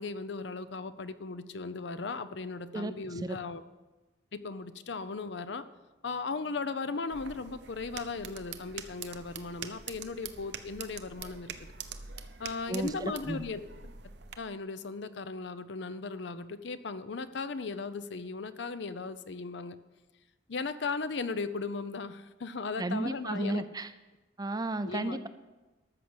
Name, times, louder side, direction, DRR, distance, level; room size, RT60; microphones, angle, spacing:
voice 1, 0.0-3.6 4.3-5.7 6.0-11.7 12.4-13.6 14.4-19.8 20.5-23.6 24.8-25.2, left 4 dB, 65° left, 12 dB, 0.6 m, -37 dB
voice 2, 2.7-3.4 12.7-12.9 13.3-13.4 22.8-23.9 24.4-25.3, right 2 dB, 20° right, 11 dB, 0.5 m, -33 dB
sound 1, 7.1-14.4, right 7 dB, 60° right, 0.8 m, -45 dB
13.5 x 6.6 x 7.9 m, 1.1 s
head